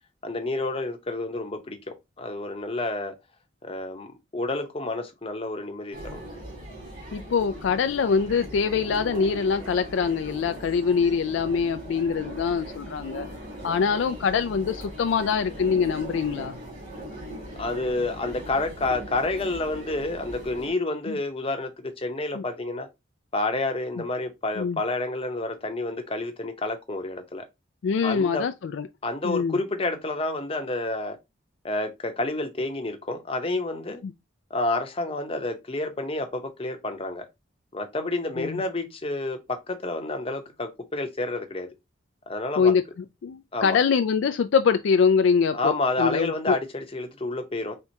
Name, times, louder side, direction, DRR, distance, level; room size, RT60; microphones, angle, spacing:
voice 1, 0.2-3.1 3.6-6.2 17.6-22.9 23.3-27.5 28.0-28.4 29.0-31.2 31.6-34.0 34.5-37.3 37.7-41.7 42.3-42.7 43.5-43.8 45.5-47.7, left 2 dB, 25° left, 0.7 m, -29 dB
sound 1, 5.9-20.7, equal, 40° right, 2.3 m, -39 dB
voice 2, 7.1-13.3 13.6-16.6 21.1-21.2 22.3-22.4 24.6-24.8 27.8-28.9 29.2-29.6 34.0-34.1 38.4-38.6 42.6-42.8 43.2-46.6, left 6 dB, 65° left, 0.3 m, -24 dB
4.5 x 3.5 x 2.7 m
head